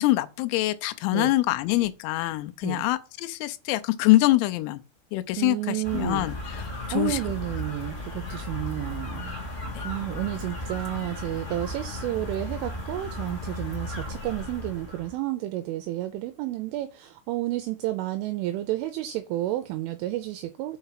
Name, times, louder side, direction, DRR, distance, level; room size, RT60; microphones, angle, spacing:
voice 1, 0.0-4.8 5.1-6.6 6.9-7.2 9.8-9.9, left 17 dB, 90° left, 3.4 m, -24 dB
voice 2, 5.4-6.3 6.9-9.3 9.8-20.8, right 15 dB, 80° right, 2.9 m, -31 dB
sound 1, 5.8-15.1, left 1 dB, 60° left, 0.7 m, -35 dB
6.5 x 5.8 x 5.7 m
omnidirectional pair, 6.0 m